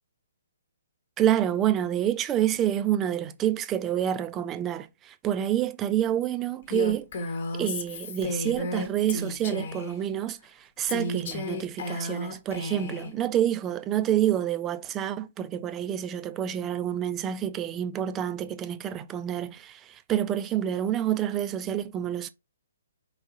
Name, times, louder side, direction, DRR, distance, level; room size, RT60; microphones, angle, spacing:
voice 1, 1.2-7.1 7.6-22.3, right 11 dB, 20° right, 0.4 m, -28 dB
Female speech woman speaking, 6.7-10.0 10.9-13.1, left 2 dB, 50° left, 1.0 m, -33 dB
4.7 x 3.4 x 2.7 m
figure-of-eight pair, 130°, 0 cm